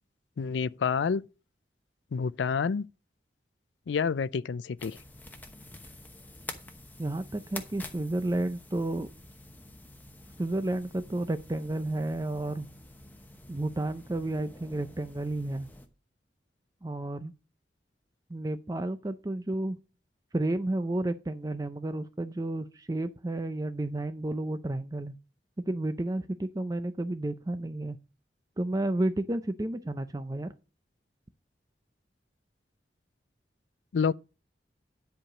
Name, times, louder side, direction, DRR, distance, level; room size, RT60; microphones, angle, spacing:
voice 1, 0.4-1.2 2.1-2.9 3.9-5.0 33.9-34.1, left 6 dB, 90° left, 0.4 m, -28 dB
sound 1, 4.8-15.9, left 2 dB, 10° left, 1.0 m, -48 dB
voice 2, 7.0-9.1 10.4-12.7 13.5-15.7 16.8-17.3 18.3-19.8 20.3-25.2 25.7-28.0 28.6-30.5, right 1 dB, 20° right, 0.5 m, -31 dB
10.5 x 4.8 x 6.1 m
head